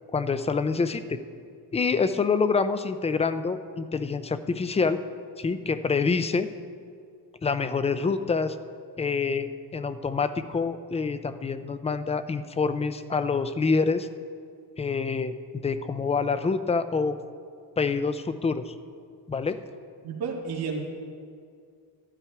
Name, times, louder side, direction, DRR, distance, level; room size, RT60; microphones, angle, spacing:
voice 1, 0.1-1.2 1.7-5.0 5.4-6.5 7.4-8.6 9.0-14.1 14.8-15.4 15.6-17.2 17.8-18.7 19.3-19.6, left 4 dB, 15° left, 11 dB, 0.3 m, -26 dB
voice 2, 20.0-20.8, right 5 dB, 55° right, -3 dB, 2.1 m, -31 dB
13.5 x 12.5 x 4.7 m, 2.2 s
cardioid pair, 145°, 45 cm